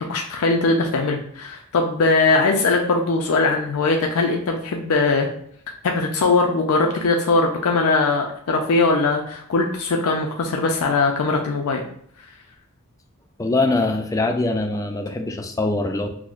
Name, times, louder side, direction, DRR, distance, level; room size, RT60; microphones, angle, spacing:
voice 1, 0.0-5.3 5.8-11.8, left 3 dB, 80° left, 2 dB, 0.4 m, -20 dB
voice 2, 13.4-16.1, left 2 dB, 15° left, 4 dB, 0.3 m, -22 dB
5.9 x 2.1 x 2.4 m, 0.65 s
head